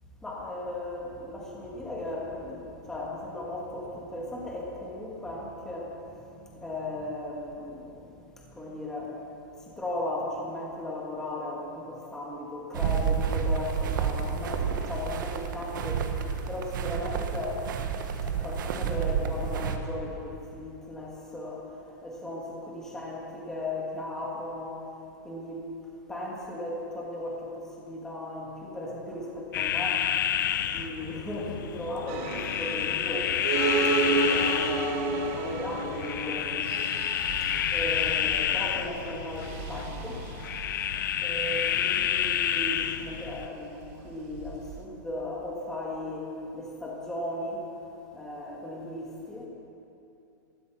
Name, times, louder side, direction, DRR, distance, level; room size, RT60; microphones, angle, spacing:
voice 1, 0.2-5.9 6.3-8.1 8.5-9.1 9.8-16.0 16.5-17.6 18.3-21.7 22.0-24.8 25.2-25.6 26.1-30.0 30.6-33.3 34.0-36.5 37.7-40.2 41.2-47.6 48.1-49.5, left 1 dB, 5° left, -3 dB, 1.8 m, -36 dB
sound 1, 12.7-19.8, right 7 dB, 75° right, 1.4 m, -30 dB
sound 2, 29.5-43.5, left 10 dB, 75° left, 0.7 m, -29 dB
sound 3, 32.1-44.8, right 4 dB, 40° right, 1.0 m, -33 dB
17.0 x 13.5 x 6.0 m, 2.8 s
supercardioid pair, 170°, 11 cm